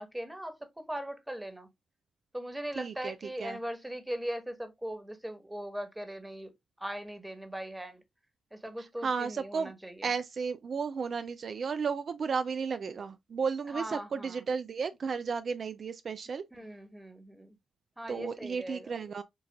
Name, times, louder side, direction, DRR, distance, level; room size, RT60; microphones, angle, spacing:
voice 1, 0.0-1.7 2.3-6.5 6.8-8.0 8.5-10.1 13.7-14.4 16.5-17.5 18.0-18.9, equal, 10° right, 1.3 m, -39 dB
voice 2, 2.8-3.6 8.8-9.7 10.0-16.4 18.1-19.2, right 5 dB, 55° right, 0.3 m, -34 dB
6.7 x 2.5 x 2.2 m
hypercardioid pair, 40°, 0 cm